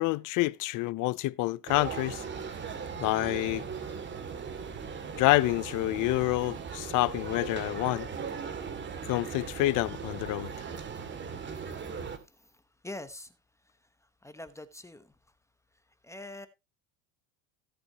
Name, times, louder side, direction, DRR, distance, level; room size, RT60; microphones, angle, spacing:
voice 1, 0.0-2.2 3.0-3.7 5.1-8.1 9.0-10.5, left 19 dB, 50° left, 0.6 m, -28 dB
sound 1, 1.7-12.2, right 6 dB, 25° right, 2.2 m, -38 dB
voice 2, 12.1-13.4 13.7-13.8 14.2-15.2 16.0-16.5, left 2 dB, 5° left, 0.9 m, -45 dB
16.5 x 7.9 x 2.8 m
cardioid pair, 150°, 41 cm